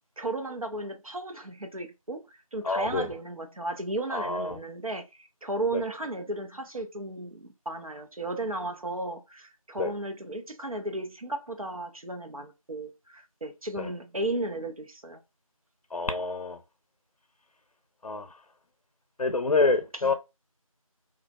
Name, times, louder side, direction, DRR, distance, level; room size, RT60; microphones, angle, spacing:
voice 1, 0.2-15.2 20.0-20.1, right 2 dB, 70° right, 0.8 m, -34 dB
voice 2, 2.6-3.1 4.1-4.6 5.7-5.8 9.8-9.9 13.8-13.9 15.9-16.6 18.0-18.3 19.2-20.1, left 3 dB, 85° left, 0.5 m, -27 dB
3.0 x 2.4 x 2.3 m
figure-of-eight pair, 175°, 18 cm